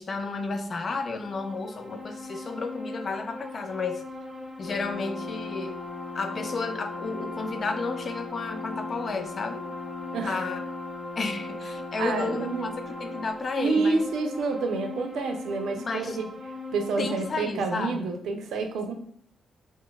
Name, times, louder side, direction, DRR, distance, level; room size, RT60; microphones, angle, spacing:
voice 1, 0.0-4.0 4.6-5.8 6.1-9.6 10.2-10.6 11.2-12.7 13.0-14.0 15.9-16.2 17.0-18.1, left 4 dB, 35° left, 7 dB, 0.3 m, -32 dB
sound 1, 1.0-17.3, left 1 dB, 10° right, 0.8 m, -40 dB
Brass instrument, 4.6-13.3, left 4 dB, 85° left, 0.8 m, -39 dB
voice 2, 10.1-10.4 12.0-12.7 13.6-16.3 16.7-18.9, right 3 dB, 85° right, 5 dB, 0.5 m, -28 dB
2.3 x 2.0 x 3.7 m, 0.63 s
cardioid pair, 140°, 0 cm